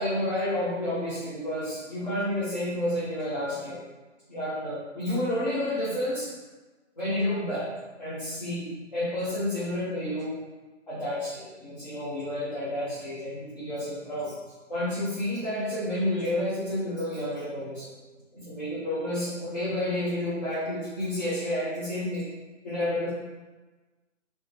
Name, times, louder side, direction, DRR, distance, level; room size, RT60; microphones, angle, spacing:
voice 1, 0.0-3.8 4.3-6.3 7.0-7.7 8.0-10.4 10.9-14.3 14.7-17.9 18.3-22.3 22.6-23.1, left 1 dB, 35° left, -12 dB, 1.0 m, -30 dB
3.1 x 3.0 x 3.3 m, 1.2 s
hypercardioid pair, 180°, 37 cm